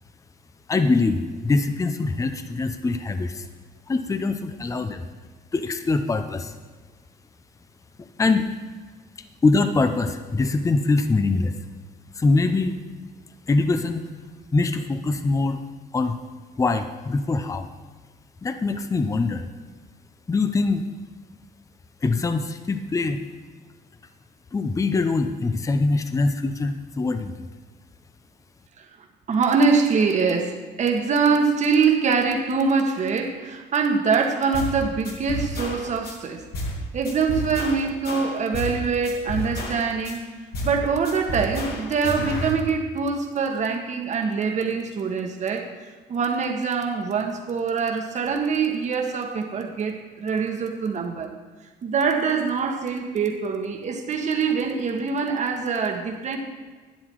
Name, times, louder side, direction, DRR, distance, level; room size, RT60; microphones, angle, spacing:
voice 1, 0.7-3.5 3.9-5.0 5.5-6.5 8.0-8.5 9.4-11.6 12.2-12.8 13.5-14.0 14.5-15.6 15.9-16.2 16.6-17.7 18.4-19.5 20.3-20.8 22.0-23.2 24.5-27.3, left 3 dB, 20° left, 9 dB, 0.7 m, -23 dB
voice 2, 29.3-36.4 36.9-40.2 40.6-45.7 46.1-51.3 51.8-56.4, right 5 dB, 45° right, 4 dB, 1.6 m, -24 dB
sound 1, 34.5-34.8 35.0-36.1 36.5-36.8 37.0-38.8 39.0-40.1 40.5-40.8 41.0-42.5, equal, 65° left, 2.2 m, -30 dB
11.5 x 9.6 x 4.7 m, 1.4 s
cardioid pair, 110°, 17 cm